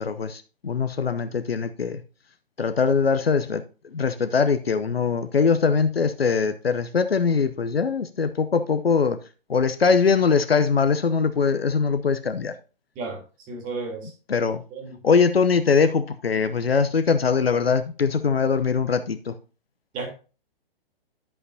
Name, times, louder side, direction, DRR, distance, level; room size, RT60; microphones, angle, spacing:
voice 1, 0.0-2.0 2.6-3.6 3.9-9.2 9.5-12.5 14.3-14.6 15.0-19.4, left 5 dB, 85° left, 0.7 m, -22 dB
voice 2, 13.5-14.1 14.7-15.0 19.9-20.1, right 3 dB, 25° right, 3.3 m, -33 dB
11.0 x 7.9 x 2.7 m
figure-of-eight pair, 125°, 29 cm